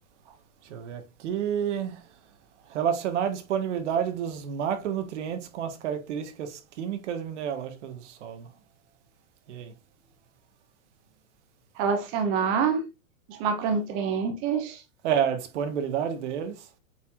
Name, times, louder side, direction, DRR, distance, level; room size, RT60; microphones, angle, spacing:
voice 1, 0.6-2.0 2.7-8.5 9.5-9.7 15.0-16.6, right 8 dB, 55° right, 1.6 m, -30 dB
voice 2, 11.8-12.8 13.3-14.8, right 6 dB, 15° right, 0.4 m, -26 dB
8.0 x 4.9 x 2.6 m
hypercardioid pair, 150°, 41 cm